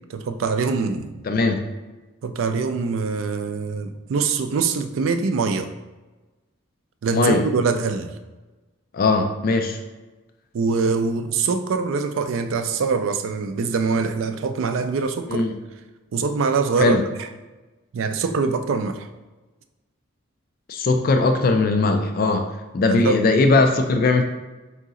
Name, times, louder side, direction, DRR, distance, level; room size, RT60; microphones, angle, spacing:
voice 1, 0.1-1.2 2.2-5.7 7.0-8.1 10.5-15.5 16.1-17.3 17.9-19.1 23.0-23.2, right 4 dB, 70° right, 8 dB, 0.4 m, -23 dB
voice 2, 1.2-1.6 7.1-7.5 8.9-9.8 15.3-15.5 16.8-17.0 20.7-22.5 22.7-24.2, left 3 dB, 45° left, 6 dB, 0.3 m, -19 dB
3.9 x 2.8 x 3.7 m, 1.2 s
head